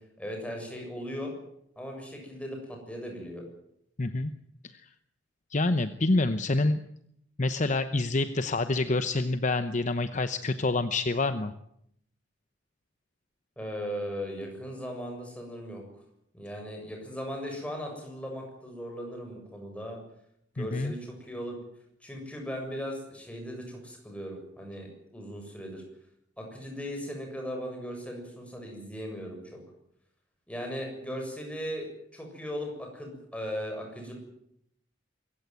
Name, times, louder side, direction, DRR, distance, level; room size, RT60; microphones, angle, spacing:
voice 1, 0.2-1.3 1.8-3.4 13.6-15.8 16.3-20.0 20.5-21.6 22.0-25.8 26.4-29.6 30.5-34.1, equal, 5° left, 2 dB, 7.3 m, -38 dB
voice 2, 4.0-4.3 5.5-6.8 7.4-11.5 20.6-20.9, left 2 dB, 40° left, 11 dB, 0.9 m, -27 dB
24.5 x 15.5 x 9.3 m, 0.74 s
head